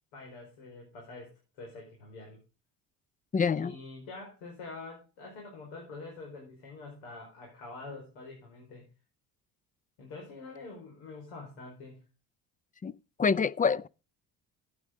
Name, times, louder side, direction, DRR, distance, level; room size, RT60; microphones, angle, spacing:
voice 1, 0.1-2.4 3.6-8.9 10.0-12.0, left 3 dB, 90° left, 5.1 m, -46 dB
voice 2, 3.3-3.7 12.8-12.9 13.2-13.9, left 5 dB, 20° left, 0.5 m, -26 dB
14.5 x 9.5 x 3.8 m
supercardioid pair, 75°, 38 cm